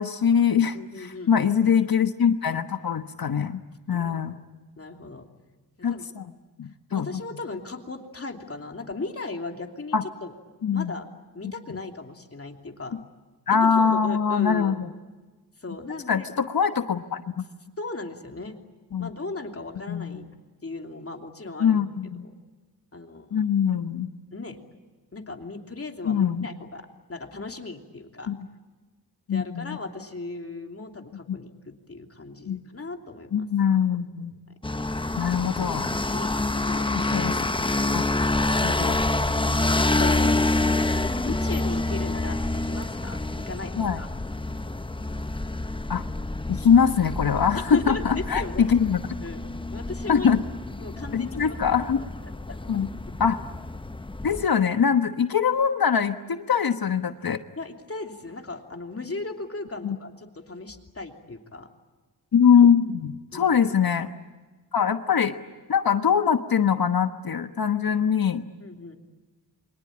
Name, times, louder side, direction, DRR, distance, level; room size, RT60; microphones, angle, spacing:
voice 1, 0.0-3.6 3.9-4.4 5.8-6.2 6.6-7.1 9.9-10.0 10.6-10.9 13.5-14.9 16.1-17.2 18.9-19.1 19.9-20.2 21.6-22.3 23.3-24.1 26.0-26.5 28.3-28.4 29.3-29.8 32.5-32.6 33.3-34.3 35.2-35.9 36.9-37.3 37.9-38.0 38.6-39.0 43.8-44.0 45.9-46.0 46.5-49.0 50.1-50.4 51.1-52.0 52.7-52.9 53.2-53.4 54.2-57.4 59.8-60.0 62.3-64.1 64.7-65.4 65.7-68.4, left 7 dB, 60° left, 8 dB, 1.3 m, -22 dB
voice 2, 0.7-1.7 3.9-4.2 4.8-5.3 5.8-6.1 6.9-10.3 10.7-11.1 11.3-13.0 13.5-14.8 15.6-16.3 17.8-18.5 19.0-20.3 20.6-21.8 22.2-22.3 22.9-23.4 24.3-24.6 25.1-28.3 29.3-33.5 36.0-36.3 36.5-37.3 39.6-40.2 41.2-44.1 47.5-48.7 49.2-49.4 49.7-50.3 50.8-51.6 52.2-52.6 57.6-61.7 63.3-63.6 68.6-69.0, left 3 dB, 35° left, 3 dB, 3.0 m, -37 dB
sound 1, 34.6-54.5, left 2 dB, 15° left, 0.8 m, -27 dB
28.0 x 24.5 x 8.7 m, 1.3 s
wide cardioid pair, 80°, 39 cm